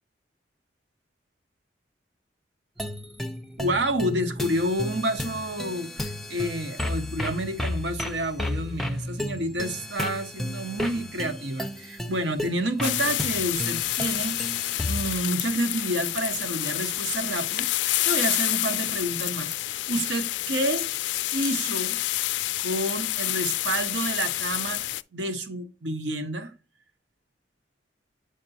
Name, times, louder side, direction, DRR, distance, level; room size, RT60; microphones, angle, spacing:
sound 1, 2.8-15.1, left 1 dB, ahead, 0.6 m, -33 dB
voice 1, 3.6-21.0 21.3-22.0 22.6-26.5, right 1 dB, 80° right, 1.1 m, -29 dB
sound 2, 12.8-25.0, left 16 dB, 80° left, 0.3 m, -28 dB
7.8 x 5.2 x 2.7 m
head